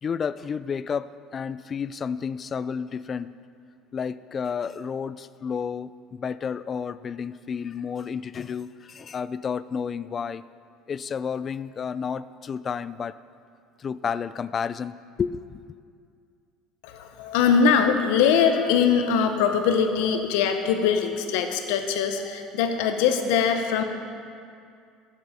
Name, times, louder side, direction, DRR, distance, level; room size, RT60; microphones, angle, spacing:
voice 1, 0.0-3.3 3.9-10.4 10.9-13.2 13.8-15.6, left 6 dB, 35° left, 16 dB, 0.3 m, -31 dB
voice 2, 16.8-23.8, left 6 dB, 80° left, 7 dB, 0.7 m, -22 dB
11.5 x 7.0 x 5.0 m, 2.3 s
supercardioid pair, 95°, 0 cm